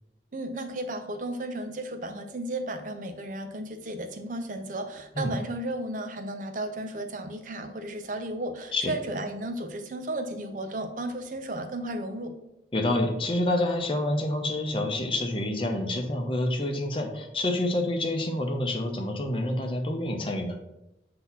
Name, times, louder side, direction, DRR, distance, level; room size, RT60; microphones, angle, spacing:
voice 1, 0.3-12.3, right 1 dB, 45° right, 6 dB, 0.7 m, -34 dB
voice 2, 12.7-20.6, left 1 dB, 30° left, 2 dB, 0.8 m, -28 dB
6.2 x 2.9 x 5.7 m, 0.90 s
head